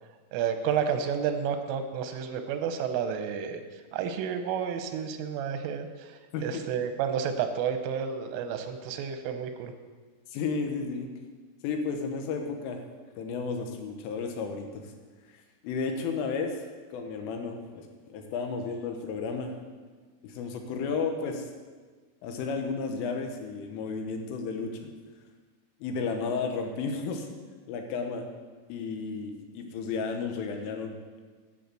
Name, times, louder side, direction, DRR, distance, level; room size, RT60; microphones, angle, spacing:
voice 1, 0.3-3.6 3.9-5.9 6.4-9.7, right 7 dB, 90° right, 7 dB, 3.4 m, -30 dB
voice 2, 10.3-11.1 11.6-12.8 13.2-14.8 15.6-16.7 16.9-19.5 20.2-21.5 22.2-24.9 25.8-27.3 27.7-28.3 28.7-31.0, left 4 dB, 90° left, 4 dB, 3.7 m, -33 dB
11.0 x 6.7 x 7.6 m, 1.4 s
omnidirectional pair, 5.5 m